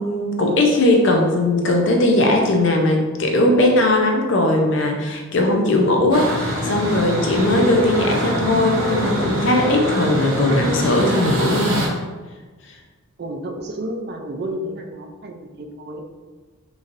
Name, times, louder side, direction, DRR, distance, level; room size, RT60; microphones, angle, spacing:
voice 1, 0.0-11.8, left 1 dB, 60° left, 2 dB, 0.5 m, -18 dB
sound 1, 6.1-11.9, equal, 65° right, 0.9 m, -24 dB
voice 2, 13.2-16.0, right 1 dB, 45° right, 3 dB, 0.4 m, -31 dB
3.9 x 3.1 x 2.5 m, 1.3 s
head